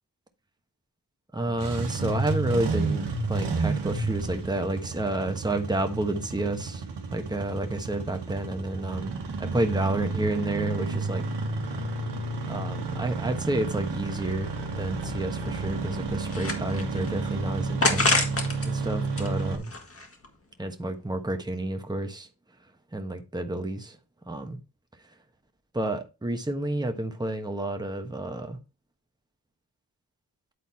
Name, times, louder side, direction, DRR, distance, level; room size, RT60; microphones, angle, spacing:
voice 1, 1.3-6.8 7.1-9.1 9.5-11.2 12.5-14.5 14.8-18.2 18.6-19.7 20.6-22.3 22.9-24.0 24.3-24.6 25.7-28.6, right 1 dB, 10° right, 1.2 m, -30 dB
Engine starting, 1.4-19.6, right 3 dB, 85° right, 1.5 m, -31 dB
sound 1, 16.2-17.1 17.8-18.7 19.0-20.3, left 2 dB, 35° left, 1.8 m, -27 dB
9.6 x 4.0 x 4.3 m
cardioid pair, 55°, 40 cm